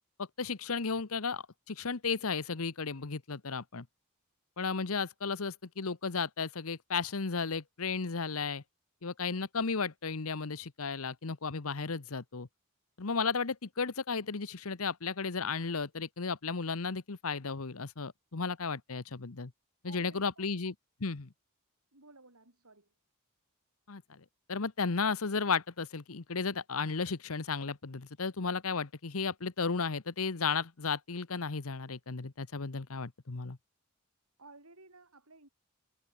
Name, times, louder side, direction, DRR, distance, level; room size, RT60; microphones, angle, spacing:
voice 1, 0.4-3.9 4.6-8.6 9.0-12.5 13.0-19.5 19.8-20.7 21.0-21.3 23.9-24.2 24.5-33.6, left 5 dB, 75° left, 1.1 m, -34 dB
voice 2, 19.9-20.5 21.9-22.9 34.4-35.5, right 3 dB, 80° right, 7.6 m, -56 dB
head